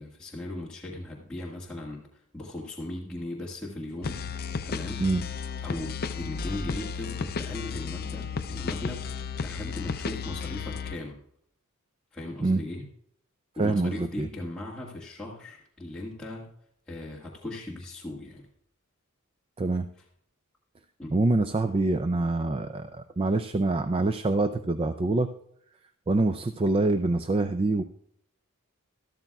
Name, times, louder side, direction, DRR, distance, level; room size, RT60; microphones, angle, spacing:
voice 1, 0.0-4.2 4.6-5.0 5.6-11.2 12.1-12.9 13.6-16.5 16.9-18.5 21.0-21.1, left 1 dB, 5° left, -8 dB, 1.7 m, -38 dB
sound 1, 4.0-11.0, left 5 dB, 45° left, 0.5 m, -33 dB
voice 2, 13.6-14.3 19.6-19.9 21.1-25.3 26.1-27.8, right 2 dB, 25° right, 9 dB, 0.4 m, -25 dB
13.5 x 13.0 x 2.3 m, 0.69 s
head